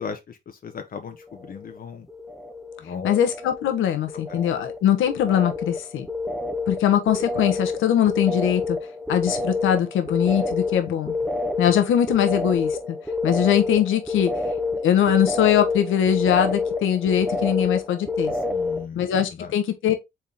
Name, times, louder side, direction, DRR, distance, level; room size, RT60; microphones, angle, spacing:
voice 1, 0.0-2.1 2.8-3.2 4.3-4.4 18.5-19.0 19.4-19.5, left 6 dB, 45° left, 0.8 m, -36 dB
sound 1, 1.2-1.8 2.1-2.8 3.1-18.9, left 3 dB, ahead, 0.8 m, -28 dB
voice 2, 3.0-6.1 6.7-8.8 9.1-11.1 11.6-12.8 13.2-14.3 14.8-18.3 18.9-19.9, left 10 dB, 80° left, 1.1 m, -21 dB
4.3 x 3.6 x 3.4 m
cardioid pair, 90°, 20 cm